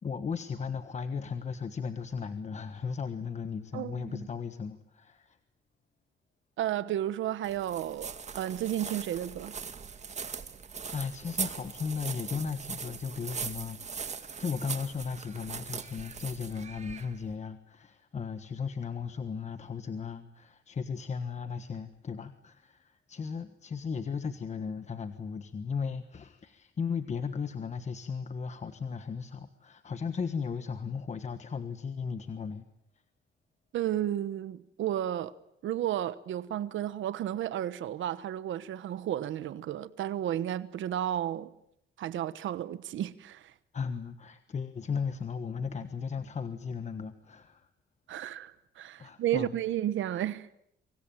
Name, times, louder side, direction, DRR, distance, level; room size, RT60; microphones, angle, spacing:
voice 1, 0.0-5.4 10.9-32.6 43.7-47.7 49.0-49.5, left 6 dB, 35° left, 1.4 m, -36 dB
voice 2, 3.7-4.2 6.6-9.5 33.7-35.3 35.6-41.5 42.0-43.5 48.1-50.5, right 11 dB, 90° right, 1.1 m, -32 dB
sound 1, 7.4-17.3, right 6 dB, 35° right, 2.2 m, -40 dB
26.0 x 25.0 x 9.0 m
cardioid pair, 145°, 19 cm